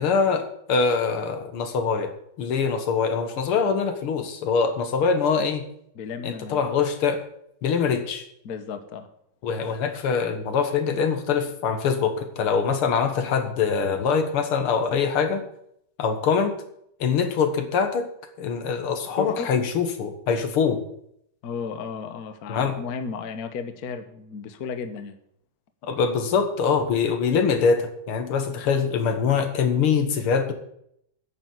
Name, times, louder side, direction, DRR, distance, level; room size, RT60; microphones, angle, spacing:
voice 1, 0.0-2.1 2.4-5.6 6.2-7.2 7.6-8.3 9.4-15.4 16.0-16.6 17.0-18.1 18.4-20.8 22.5-22.7 25.8-30.5, left 6 dB, 80° left, 7 dB, 2.3 m, -23 dB
voice 2, 5.9-6.7 8.4-9.1 19.2-19.5 21.4-25.1, left 5 dB, 50° left, 8 dB, 1.3 m, -34 dB
10.0 x 6.9 x 9.3 m, 0.73 s
omnidirectional pair, 2.4 m